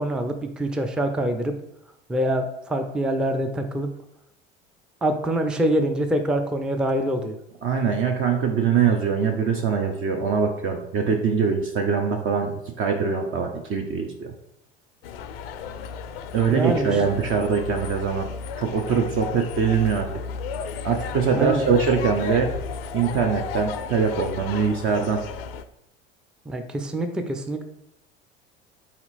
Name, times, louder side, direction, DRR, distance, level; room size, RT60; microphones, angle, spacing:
voice 1, 0.0-1.5 2.1-3.9 5.0-7.4 16.5-17.0 21.4-21.6 26.5-27.6, right 1 dB, 5° right, 6 dB, 0.4 m, -25 dB
voice 2, 7.6-12.5 12.8-14.3 16.3-18.3 18.6-20.1 20.8-22.5 22.9-25.2, right 6 dB, 45° right, 3 dB, 0.7 m, -23 dB
sound 1, 15.0-25.6, left 6 dB, 75° left, 0.4 m, -34 dB
4.1 x 2.9 x 4.1 m, 0.80 s
hypercardioid pair, 75°, 29 cm